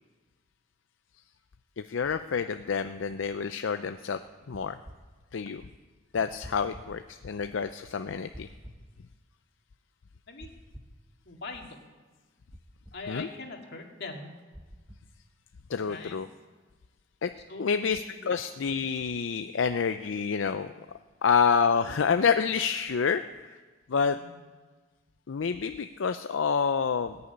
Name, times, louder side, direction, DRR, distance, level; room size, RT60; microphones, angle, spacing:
voice 1, 1.8-4.2 4.5-4.8 5.3-5.6 6.1-8.5 13.1-13.3 15.7-16.3 17.2-17.3 17.6-20.7 21.2-23.5 23.9-24.2 25.3-27.2, left 6 dB, 80° left, 9 dB, 0.5 m, -28 dB
sound 1, 4.5-5.0 6.4-6.9 8.3-8.8 10.4-11.0 12.5-13.0 14.5-15.1, equal, 5° right, 1.1 m, -47 dB
voice 2, 11.3-11.9 12.9-14.3 15.7-16.2 17.5-18.4 24.1-24.4, left 3 dB, 60° left, 2 dB, 2.1 m, -42 dB
19.0 x 7.0 x 9.5 m, 1.4 s
head